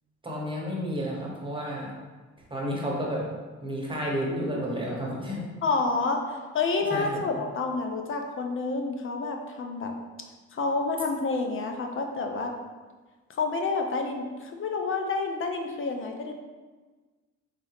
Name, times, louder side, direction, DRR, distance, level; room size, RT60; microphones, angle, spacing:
voice 1, 0.2-1.9 2.5-3.3 3.6-5.4 6.9-7.3, equal, 15° right, -3 dB, 1.2 m, -31 dB
voice 2, 5.6-9.9 10.5-12.6 13.3-16.3, left 3 dB, 45° left, 3 dB, 0.7 m, -29 dB
4.1 x 3.7 x 3.4 m, 1.3 s
cardioid pair, 90°, 30 cm